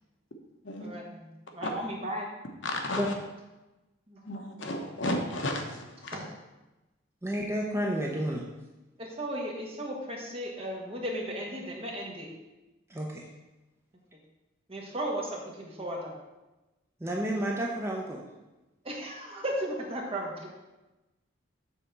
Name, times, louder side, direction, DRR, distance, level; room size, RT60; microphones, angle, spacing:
voice 1, 0.8-2.3 4.1-4.2 6.1-6.3 9.0-12.3 14.7-16.1 18.8-20.5, right 1 dB, 30° right, -1 dB, 1.5 m, -35 dB
voice 2, 2.6-3.2 4.2-6.2, left 1 dB, 65° left, 3 dB, 1.1 m, -33 dB
voice 3, 7.2-8.4 12.9-13.3 17.0-18.2, equal, 15° right, -1 dB, 0.7 m, -30 dB
6.7 x 4.3 x 6.7 m, 1.1 s
head